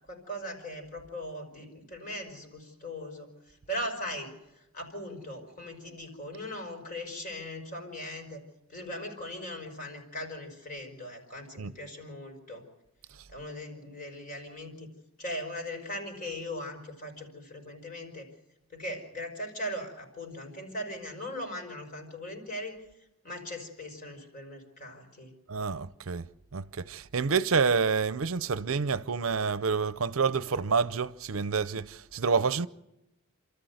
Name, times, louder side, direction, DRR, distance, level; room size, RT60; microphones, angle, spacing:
voice 1, 0.1-8.4 8.7-12.6 13.3-14.9 15.2-18.3 18.7-22.8 23.2-25.3, left 1 dB, 40° left, 5.2 m, -39 dB
voice 2, 25.5-26.3 26.5-32.7, right 5 dB, 70° right, 0.7 m, -28 dB
29.0 x 13.5 x 8.0 m
head